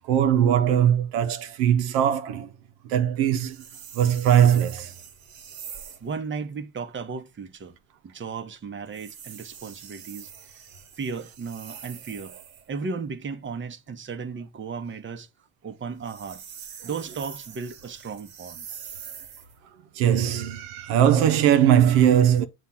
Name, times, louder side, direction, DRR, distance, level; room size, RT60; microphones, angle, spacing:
voice 1, 0.0-2.5 2.8-3.6 3.9-4.9 19.9-22.4, right 10 dB, 80° right, 0.7 m, -20 dB
sound 1, 3.4-6.1 8.9-12.7 15.9-19.6, right 8 dB, 55° right, 1.2 m, -44 dB
voice 2, 6.0-7.7 8.0-10.3 11.0-12.4 12.7-15.3 15.6-16.4 16.8-18.6, right 5 dB, 30° right, 0.9 m, -35 dB
7.1 x 2.5 x 5.6 m
supercardioid pair, 75°, 41 cm